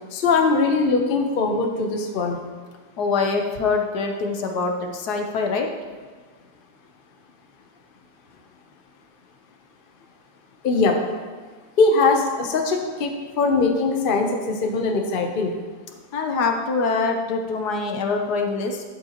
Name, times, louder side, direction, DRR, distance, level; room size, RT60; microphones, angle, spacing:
voice 1, 0.1-2.4 10.6-11.0 11.8-15.6, left 3 dB, 45° left, 3 dB, 0.8 m, -21 dB
voice 2, 3.0-5.7 16.1-18.8, left 4 dB, 70° left, 3 dB, 1.3 m, -24 dB
11.5 x 7.5 x 2.9 m, 1.4 s
omnidirectional pair, 1.9 m